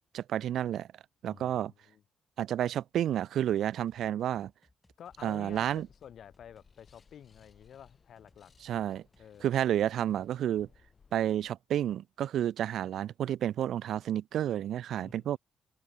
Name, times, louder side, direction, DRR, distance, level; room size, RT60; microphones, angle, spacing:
voice 1, 0.1-0.9 1.2-1.7 2.4-4.5 5.2-5.9 8.6-9.0 9.4-10.7 11.1-15.4, right 11 dB, 70° right, 0.6 m, -30 dB
voice 2, 1.2-2.0 5.0-8.5 9.2-9.5 14.9-15.4, left 9 dB, 60° left, 2.9 m, -51 dB
sound 1, 3.1-7.9 8.2-9.9, left 2 dB, 15° left, 5.2 m, -68 dB
sound 2, 5.1-11.5, left 5 dB, 40° left, 3.0 m, -64 dB
cardioid pair, 90°, 0 cm